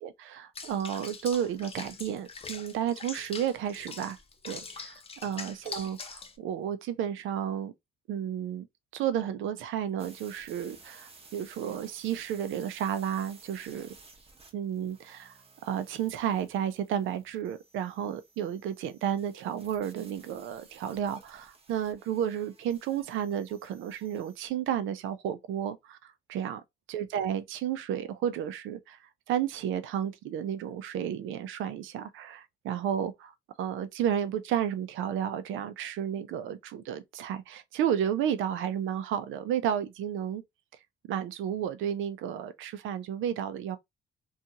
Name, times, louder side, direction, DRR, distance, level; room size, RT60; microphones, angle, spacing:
voice 1, 0.0-4.2 4.4-7.7 8.1-8.7 8.9-13.9 14.5-15.3 15.6-26.6 26.9-29.0 29.3-33.3 33.6-40.4 41.0-43.8, right 9 dB, 85° right, 0.5 m, -32 dB
Water / Bathtub (filling or washing), 0.5-6.4, left 4 dB, 30° left, 0.5 m, -43 dB
sound 1, 10.0-24.5, right 4 dB, 30° right, 0.8 m, -56 dB
2.6 x 2.3 x 2.7 m
cardioid pair, 90°, 20 cm